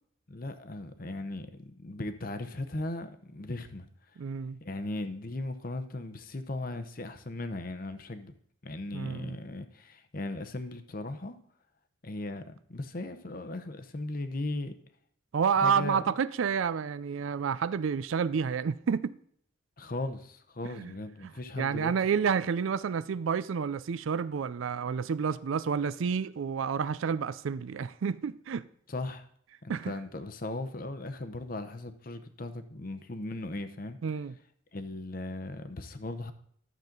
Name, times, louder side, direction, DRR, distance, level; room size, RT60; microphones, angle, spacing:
voice 1, 0.3-3.9 4.6-8.3 8.6-11.4 12.0-14.7 15.5-16.1 19.8-22.3 28.9-29.3 29.6-34.0 34.7-36.3, left 2 dB, 45° left, 0.8 m, -37 dB
voice 2, 4.2-4.6 8.9-9.4 15.3-19.1 20.8-20.9 21.6-28.7 29.7-29.9 34.0-34.3, right 6 dB, 75° right, 0.4 m, -29 dB
12.0 x 7.3 x 3.8 m
head